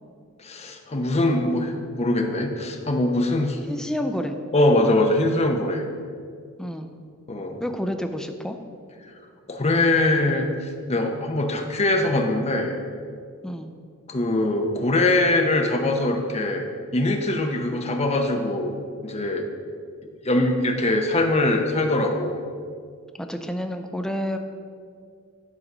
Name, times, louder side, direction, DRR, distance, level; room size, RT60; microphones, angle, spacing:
voice 1, 0.4-3.6 4.5-5.8 7.3-7.6 9.5-10.5 10.9-12.8 14.1-16.6 16.9-18.7 19.0-19.4 20.2-22.4, left 2 dB, 30° left, 4 dB, 0.8 m, -22 dB
voice 2, 3.7-4.3 6.6-6.9 7.6-8.6 13.4-13.7 23.1-24.4, equal, 5° left, 5 dB, 0.5 m, -29 dB
11.0 x 4.0 x 6.0 m, 2.2 s
head